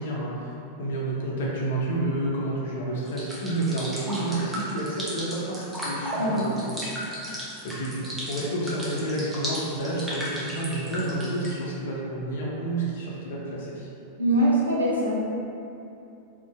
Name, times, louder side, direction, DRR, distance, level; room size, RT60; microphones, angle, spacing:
voice 1, 0.0-6.8 7.6-13.9, right 1 dB, 60° left, -4 dB, 0.5 m, -30 dB
sound 1, 3.1-11.5, equal, 5° right, 0.5 m, -34 dB
voice 2, 6.2-6.5 14.2-15.2, right 1 dB, 80° right, -6 dB, 0.5 m, -23 dB
2.5 x 2.1 x 2.3 m, 2.7 s
figure-of-eight pair, 90°, 0 cm